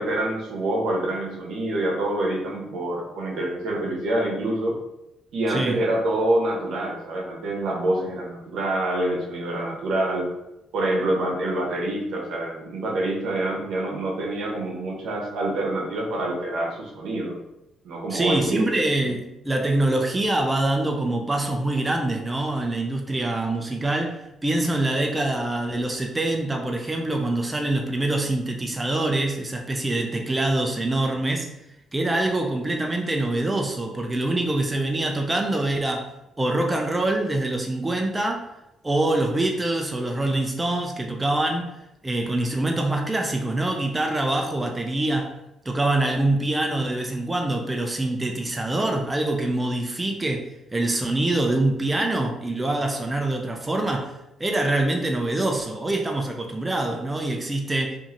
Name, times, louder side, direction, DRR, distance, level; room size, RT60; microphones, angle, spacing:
voice 1, 0.0-4.8 5.3-10.3 10.7-17.4 17.8-18.7, right 1 dB, 80° right, -1 dB, 0.8 m, -26 dB
voice 2, 5.5-5.8 18.1-31.5 31.9-36.1 36.4-38.5 38.8-41.7 42.0-45.3 45.7-58.0, right 2 dB, 15° right, 2 dB, 0.4 m, -25 dB
2.8 x 2.5 x 2.5 m, 0.88 s
cardioid pair, 90°, 0 cm